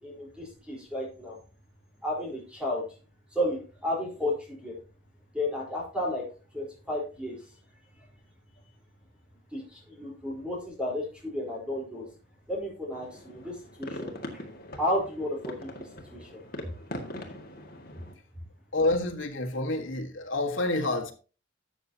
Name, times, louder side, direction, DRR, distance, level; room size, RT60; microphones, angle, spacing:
voice 1, 0.0-1.4 2.0-2.8 3.3-4.8 5.3-6.2 6.5-7.4 9.5-12.1 12.5-14.4 14.8-16.4, left 1 dB, 5° right, 4.1 m, -33 dB
sound 1, 12.9-18.1, left 1 dB, 45° left, 2.0 m, -41 dB
voice 2, 18.7-21.1, left 2 dB, 75° left, 1.6 m, -28 dB
13.0 x 8.3 x 2.9 m
head